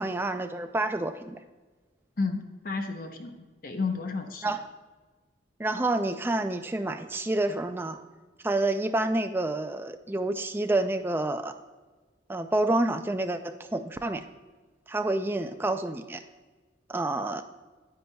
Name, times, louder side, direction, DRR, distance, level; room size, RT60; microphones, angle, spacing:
voice 1, 0.0-1.4 4.4-4.6 5.6-8.0 8.4-11.5 12.3-14.2 14.9-16.2 16.9-17.4, right 2 dB, 10° right, 8 dB, 0.3 m, -28 dB
voice 2, 2.2-4.6, left 4 dB, 50° left, 5 dB, 0.7 m, -32 dB
9.5 x 9.2 x 2.3 m, 1.3 s
head